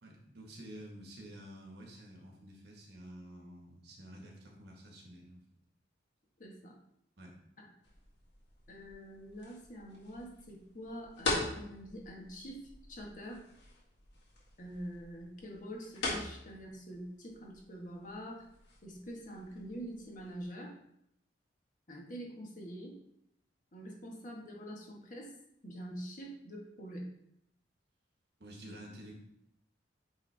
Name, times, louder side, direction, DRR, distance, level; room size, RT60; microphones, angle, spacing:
voice 1, 0.0-5.4 7.2-7.4 28.4-29.1, right 1 dB, 60° right, 0 dB, 1.5 m, -50 dB
voice 2, 6.4-6.8 8.7-13.5 14.6-18.5 18.8-20.7 21.9-23.0 23.7-25.3 25.6-27.1, equal, 45° left, -2 dB, 1.4 m, -45 dB
sound 1, 7.8-20.5, left 2 dB, 65° left, 1.9 m, -43 dB
8.7 x 3.5 x 3.4 m, 0.78 s
head